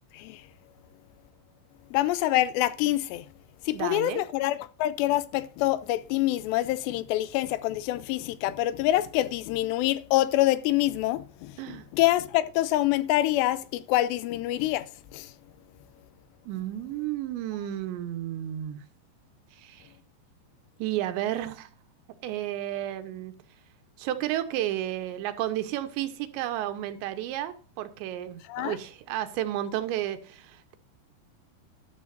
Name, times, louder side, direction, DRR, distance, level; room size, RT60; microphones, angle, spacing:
voice 1, 1.9-3.3 3.7-11.6 11.9-15.3 28.5-28.8, left 15 dB, 85° left, 2.8 m, -26 dB
voice 2, 3.7-4.2 11.6-11.9 16.5-18.8 19.6-19.9 20.8-21.7 22.2-23.3 24.0-30.8, right 12 dB, 85° right, 3.3 m, -32 dB
13.0 x 11.5 x 2.6 m
omnidirectional pair, 5.0 m